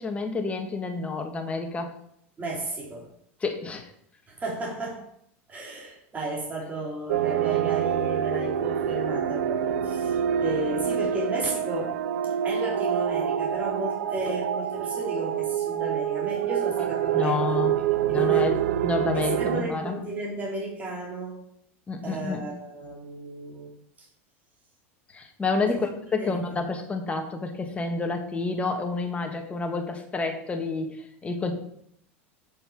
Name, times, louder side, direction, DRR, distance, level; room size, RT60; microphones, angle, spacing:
voice 1, 0.0-1.9 3.4-3.9 17.1-17.7 18.1-20.0 21.9-22.4 25.1-25.9 26.2-31.5, left 3 dB, 20° left, 4 dB, 1.6 m, -29 dB
voice 2, 2.4-3.1 4.3-5.1 5.5-11.9 12.4-17.6 18.1-18.5 19.1-21.4 22.0-23.7 24.0-24.1 25.7-25.8 26.2-26.4, right 2 dB, 25° right, -3 dB, 3.3 m, -34 dB
sound 1, 7.1-19.6, right 9 dB, 90° right, 0.6 m, -26 dB
7.8 x 6.8 x 4.9 m, 0.68 s
supercardioid pair, 120°, 7 cm